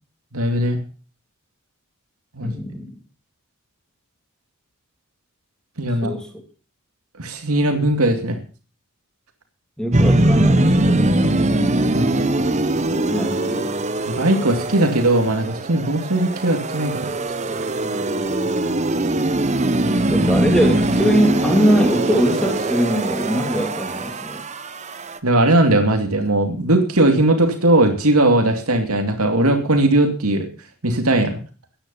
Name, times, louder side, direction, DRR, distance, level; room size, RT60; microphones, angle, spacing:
voice 1, 0.3-0.8 2.3-2.5 5.8-6.2 7.2-8.4 11.9-12.3 14.1-17.1 25.2-30.5 30.8-31.4, right 1 dB, 90° right, 5 dB, 2.5 m, -18 dB
voice 2, 2.4-3.0 6.0-6.3 9.8-11.3 12.9-13.7 20.1-24.5, equal, 5° left, 3 dB, 2.9 m, -22 dB
sound 1, 9.9-25.2, right 1 dB, 30° right, 1.0 m, -21 dB
16.0 x 10.5 x 5.6 m, 0.37 s
head